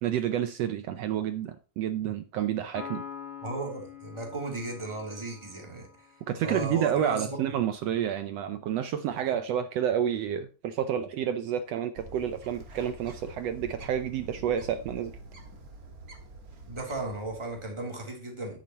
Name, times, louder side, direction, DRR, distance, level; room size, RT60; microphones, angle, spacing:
voice 1, 0.0-3.0 6.3-15.2, right 9 dB, 80° right, 1.4 m, -29 dB
Piano, 2.7-6.3, left 7 dB, 45° left, 1.6 m, -44 dB
voice 2, 3.4-7.4 16.6-18.6, right 2 dB, 10° right, 2.4 m, -36 dB
Bird, 12.0-17.9, right 2 dB, 40° right, 1.4 m, -46 dB
10.0 x 9.3 x 2.9 m
omnidirectional pair, 3.6 m